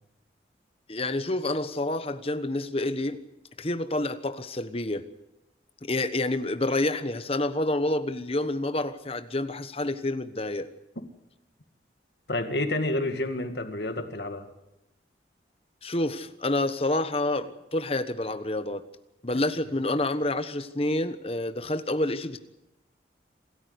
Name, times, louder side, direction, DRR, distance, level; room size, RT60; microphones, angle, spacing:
voice 1, 0.9-3.2 3.6-5.0 5.8-10.7 15.8-18.8 19.2-22.4, left 2 dB, 30° left, 10 dB, 1.2 m, -28 dB
voice 2, 12.3-14.5 19.3-19.4, left 1 dB, 70° left, 7 dB, 2.0 m, -29 dB
27.0 x 14.0 x 8.1 m, 0.91 s
head